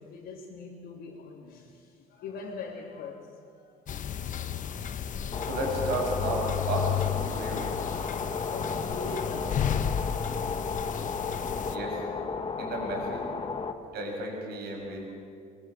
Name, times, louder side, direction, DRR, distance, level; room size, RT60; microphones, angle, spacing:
voice 1, 0.0-3.7 4.2-4.8 8.2-9.9 13.8-13.9 15.1-15.2, left 4 dB, 85° left, -5 dB, 3.3 m, -43 dB
sound 1, 3.9-11.8, left 9 dB, 50° left, 1.2 m, -33 dB
sound 2, 5.3-13.7, left 5 dB, 35° left, 1.6 m, -34 dB
voice 2, 5.4-7.7 11.7-12.0 12.6-13.2 13.9-15.1, right 2 dB, 75° right, 0 dB, 6.8 m, -33 dB
23.5 x 23.0 x 7.9 m, 2.3 s
cardioid pair, 110°, 17 cm